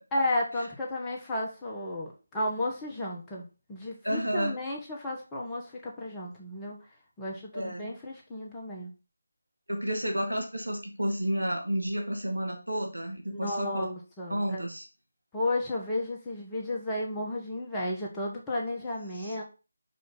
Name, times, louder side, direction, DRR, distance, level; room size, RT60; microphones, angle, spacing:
voice 1, 0.1-6.8 7.2-8.9 13.3-14.6 15.3-19.4, left 1 dB, 10° left, -4 dB, 1.3 m, -33 dB
voice 2, 4.0-4.6 7.5-7.9 9.7-13.9 14.3-14.9 19.2-19.4, equal, 85° right, 2 dB, 2.3 m, -31 dB
5.7 x 5.1 x 3.9 m, 0.31 s
figure-of-eight pair, 160°, 0 cm